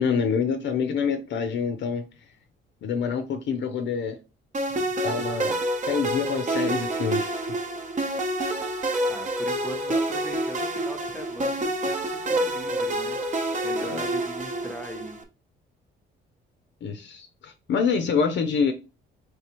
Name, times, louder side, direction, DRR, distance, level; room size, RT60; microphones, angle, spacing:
voice 1, 0.0-2.0 2.8-4.2 5.0-5.5 5.8-7.4 13.7-14.0 16.8-18.7, left 6 dB, 65° left, 0.5 m, -26 dB
sound 1, 4.5-15.2, right 1 dB, 40° right, 0.8 m, -28 dB
voice 2, 9.1-12.0 12.3-13.2 13.6-15.2, equal, 5° left, 0.7 m, -39 dB
3.3 x 3.2 x 2.9 m
cardioid pair, 90°, 20 cm